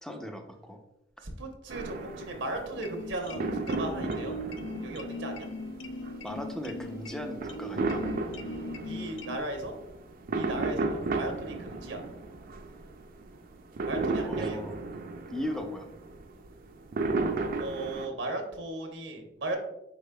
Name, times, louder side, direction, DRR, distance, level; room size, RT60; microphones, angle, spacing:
voice 1, 0.0-0.8 6.2-8.1 14.2-14.7 15.3-15.9, equal, 5° left, 4 dB, 0.5 m, -37 dB
voice 2, 1.2-4.3 4.8-5.5 8.4-9.7 10.3-12.0 13.8-14.6 17.6-19.6, right 2 dB, 85° right, 3 dB, 0.9 m, -37 dB
sound 1, 1.7-18.1, right 3 dB, 50° right, 0.5 m, -34 dB
sound 2, 2.7-9.4, left 2 dB, 80° left, 0.4 m, -40 dB
4.9 x 4.3 x 2.2 m, 0.88 s
head